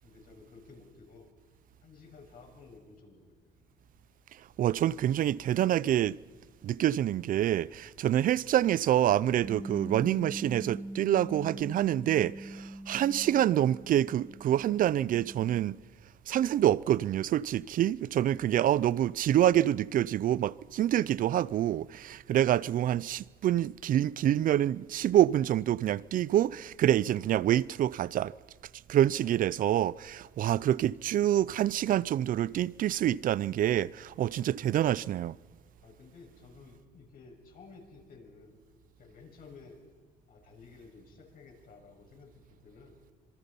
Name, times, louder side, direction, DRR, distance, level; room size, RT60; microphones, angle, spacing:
voice 1, 0.0-1.3 1.8-3.6 18.3-18.6 35.8-38.6 39.0-39.8 40.3-43.0, left 4 dB, 60° left, 6.6 m, -54 dB
voice 2, 4.6-6.2 6.6-15.8 16.3-28.3 28.9-35.4, right 12 dB, 55° right, 0.6 m, -27 dB
Bass guitar, 9.4-15.7, right 1 dB, 15° right, 2.3 m, -42 dB
26.5 x 23.0 x 5.5 m
cardioid pair, 110°, 17 cm